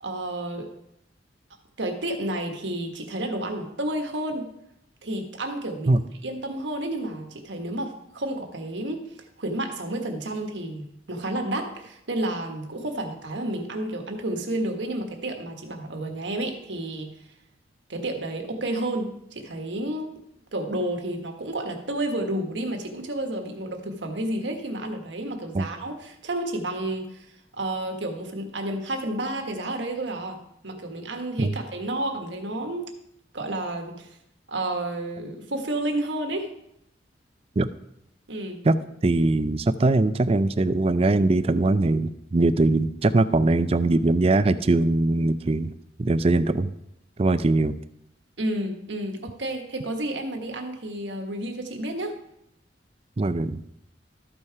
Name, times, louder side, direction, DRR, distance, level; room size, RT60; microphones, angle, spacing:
voice 1, 0.0-0.7 1.8-4.5 5.0-9.0 9.4-17.1 17.9-20.1 20.5-27.2 27.5-30.4 30.6-32.9 33.3-34.1 34.5-36.5 38.3-38.6 48.4-52.2, right 1 dB, 85° right, 4 dB, 1.5 m, -31 dB
voice 2, 39.0-45.7 46.0-46.7 47.2-47.8 53.2-53.7, right 2 dB, 35° right, 13 dB, 0.4 m, -21 dB
13.5 x 5.5 x 4.7 m, 0.78 s
head